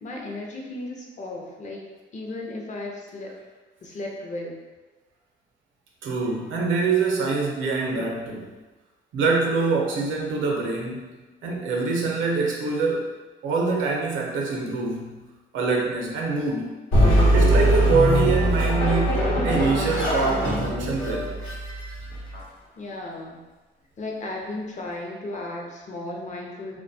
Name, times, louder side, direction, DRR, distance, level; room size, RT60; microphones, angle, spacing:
voice 1, 0.0-1.8 2.1-3.3 3.8-4.6 22.8-23.4 24.0-26.8, left 2 dB, 40° left, -1 dB, 0.6 m, -35 dB
voice 2, 6.0-8.5 9.1-13.1 13.4-15.2 15.5-16.7 17.3-21.4, right 4 dB, 75° right, -1 dB, 0.6 m, -25 dB
sound 1, 16.9-22.4, equal, 85° left, 0.9 m, -21 dB
2.5 x 2.2 x 2.6 m, 1.2 s
cardioid pair, 90°, 20 cm